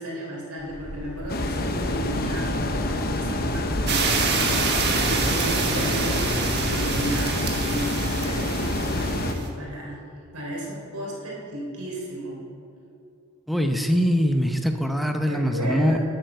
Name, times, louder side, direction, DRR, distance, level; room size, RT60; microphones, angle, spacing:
voice 1, 0.0-10.0 10.3-12.4 15.3-16.0, right 1 dB, 85° right, -3 dB, 3.4 m, -34 dB
sound 1, 0.6-9.0, equal, 75° left, 2.4 m, -43 dB
sound 2, 1.3-9.4, left 1 dB, 45° left, 0.8 m, -27 dB
sound 3, 3.9-9.5, right 4 dB, 50° right, 1.4 m, -27 dB
voice 2, 13.5-16.0, equal, ahead, 4 dB, 0.7 m, -22 dB
11.5 x 7.9 x 6.7 m, 2.7 s
head